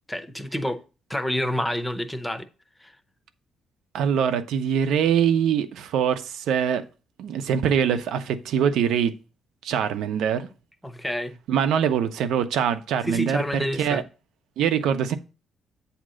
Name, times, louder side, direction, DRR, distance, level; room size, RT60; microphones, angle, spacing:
voice 1, 0.1-0.8 1.1-2.4 2.8-2.9 10.8-11.4 13.0-14.0, equal, 5° left, 0.6 m, -28 dB
voice 2, 3.9-6.8 7.2-9.1 9.6-10.5 11.5-14.0 14.6-15.2, right 8 dB, 90° right, 0.7 m, -23 dB
8.6 x 2.9 x 6.3 m
cardioid pair, 170°, 0 cm